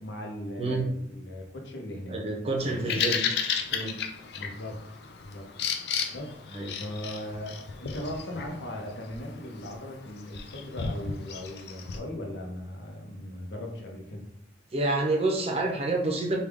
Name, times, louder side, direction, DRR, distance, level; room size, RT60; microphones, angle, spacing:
voice 1, 0.0-2.2 2.6-3.0 4.4-4.8 5.2-5.5 6.1-6.4 6.8-14.3, left 1 dB, 85° left, 1 dB, 0.8 m, -38 dB
voice 2, 2.1-3.2 3.7-3.9 6.5-6.7 14.7-16.4, right 2 dB, 35° right, 1 dB, 0.5 m, -28 dB
Bird vocalization bird call bird song, 2.6-12.0, left 6 dB, 65° left, 0.4 m, -34 dB
3.4 x 2.3 x 3.4 m, 0.78 s
head